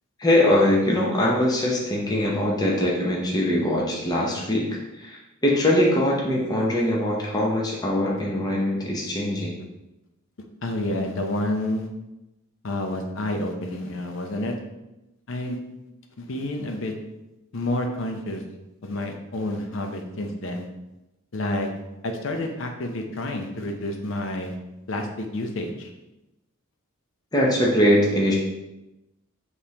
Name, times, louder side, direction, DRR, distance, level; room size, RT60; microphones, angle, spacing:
voice 1, 0.2-9.5 27.3-28.3, left 1 dB, 20° left, -3 dB, 0.7 m, -22 dB
voice 2, 10.6-11.9 12.6-14.5 15.3-15.6 16.2-16.9 17.5-18.4 18.8-20.6 21.3-21.7 22.0-24.6 24.9-25.9, left 1 dB, 60° left, 4 dB, 0.6 m, -29 dB
5.1 x 3.2 x 2.8 m, 0.96 s
head